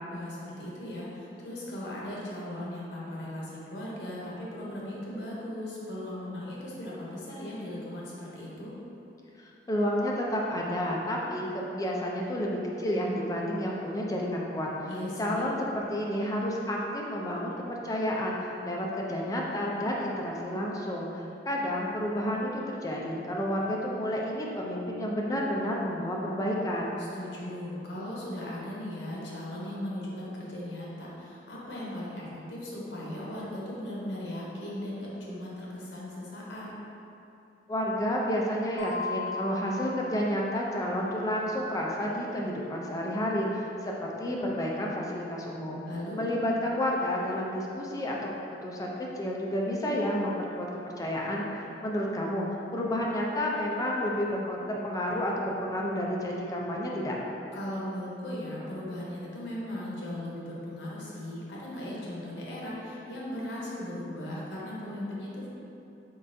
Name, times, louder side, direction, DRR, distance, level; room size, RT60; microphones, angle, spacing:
voice 1, 0.1-8.7 14.9-15.5 27.1-36.7 45.8-46.3 57.5-65.5, left 1 dB, 85° left, -6 dB, 0.9 m, -38 dB
voice 2, 9.4-14.9 15.2-21.1 21.5-27.0 37.7-45.8 46.2-48.2 48.6-50.7 51.0-51.4 51.8-52.5 52.7-57.2, equal, 20° left, -3 dB, 0.4 m, -30 dB
sound 1, 38.8-41.3, left 3 dB, 80° right, 0.7 m, -38 dB
3.8 x 3.3 x 2.6 m, 2.9 s
head